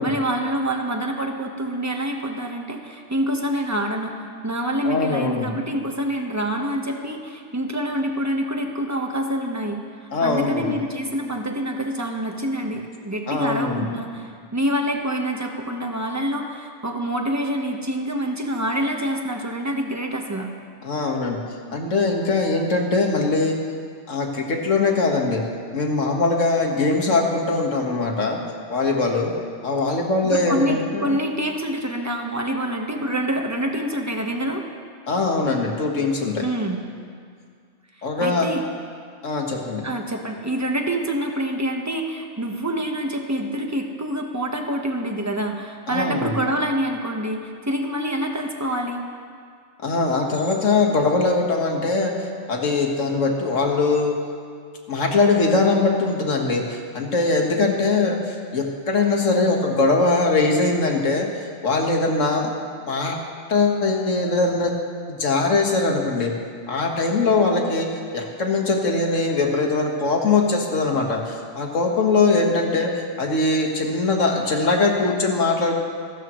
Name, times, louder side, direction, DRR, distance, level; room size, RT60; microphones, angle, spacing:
voice 1, 0.0-9.8 10.2-20.5 29.9-30.0 30.2-34.6 36.4-36.8 38.0-38.6 39.8-49.0, right 1 dB, 15° right, 2 dB, 1.2 m, -26 dB
voice 2, 4.8-5.5 10.1-10.7 13.3-13.9 20.8-21.4 21.7-23.6 24.1-25.4 25.7-28.4 28.7-29.3 29.6-31.1 35.1-36.5 38.0-38.5 39.2-39.9 45.9-46.3 49.8-52.1 52.5-54.2 54.9-61.3 61.6-62.5 62.9-63.2 63.5-64.7 65.1-66.3 66.7-67.9 68.1-72.9 73.2-75.8, left 3 dB, 90° left, 1 dB, 2.0 m, -21 dB
26.0 x 12.5 x 3.1 m, 2.1 s
omnidirectional pair, 1.3 m